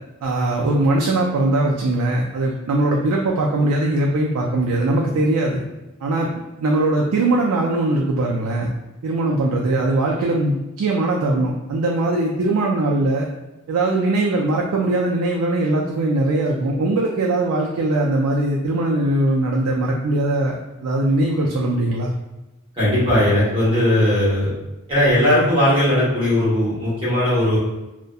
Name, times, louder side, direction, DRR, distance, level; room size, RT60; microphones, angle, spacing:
voice 1, 0.2-5.6 6.0-6.3 6.6-8.7 9.0-13.3 13.7-20.6 20.8-22.1, right 2 dB, 90° right, -1 dB, 0.3 m, -20 dB
voice 2, 22.8-24.5 24.9-27.6, left 1 dB, 25° right, -10 dB, 1.0 m, -18 dB
2.6 x 2.1 x 2.2 m, 1.0 s
head